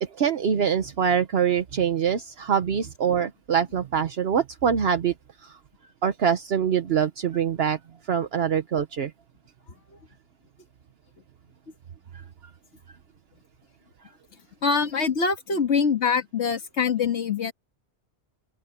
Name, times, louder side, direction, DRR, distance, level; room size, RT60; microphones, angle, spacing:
voice 1, 0.0-5.1 5.4-5.6 6.0-9.1 12.1-12.2, right 8 dB, 70° right, 1.1 m, -24 dB
voice 2, 14.6-17.5, left 5 dB, 90° left, 1.9 m, -24 dB
open air
omnidirectional pair, 1.1 m